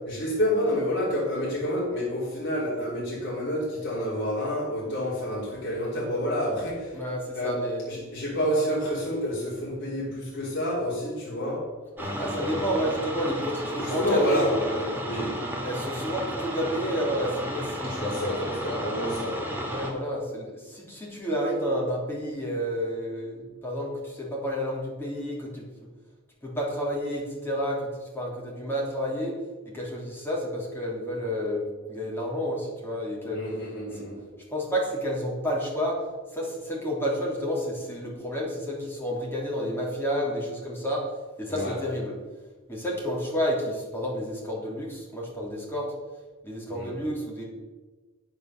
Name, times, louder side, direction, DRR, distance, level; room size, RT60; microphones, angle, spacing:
voice 1, 0.1-7.0 7.3-7.6 7.9-11.7 12.0-12.7 13.8-15.4 15.7-15.8 17.8-19.6 33.3-34.2 41.5-41.8 46.7-47.0, equal, 60° left, -5 dB, 3.4 m, -29 dB
voice 2, 6.9-7.8 12.2-14.5 15.6-18.2 19.6-25.6 26.4-29.4 29.7-33.4 33.9-34.1 34.5-36.0 36.3-41.0 41.4-42.2 42.7-45.9 46.4-47.4, equal, 10° left, -4 dB, 3.3 m, -30 dB
sound 1, 12.0-19.9, equal, 10° right, 1.8 m, -33 dB
9.2 x 8.7 x 6.7 m, 1.3 s
head